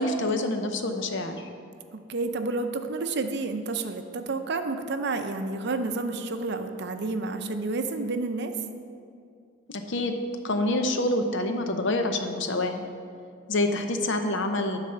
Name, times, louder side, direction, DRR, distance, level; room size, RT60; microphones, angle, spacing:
voice 1, 0.0-1.5 9.7-10.2 10.4-12.8 13.5-14.8, left 2 dB, 65° left, 6 dB, 0.7 m, -27 dB
voice 2, 2.1-8.5, right 3 dB, 60° right, 7 dB, 0.6 m, -30 dB
9.7 x 4.1 x 6.8 m, 2.3 s
head